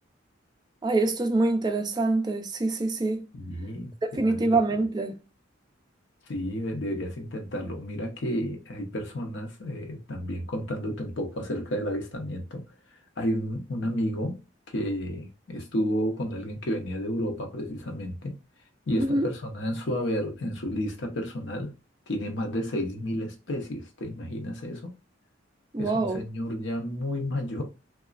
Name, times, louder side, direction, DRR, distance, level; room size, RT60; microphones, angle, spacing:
voice 1, 0.8-3.2 4.1-5.2 19.0-19.3 25.7-26.2, right 2 dB, 20° right, 0.3 m, -25 dB
voice 2, 3.3-3.9 4.2-4.6 6.3-12.7 13.2-14.4 14.7-18.4 18.9-21.7 22.1-24.9 25.8-27.6, equal, 70° left, 0.7 m, -31 dB
2.9 x 2.2 x 2.4 m
head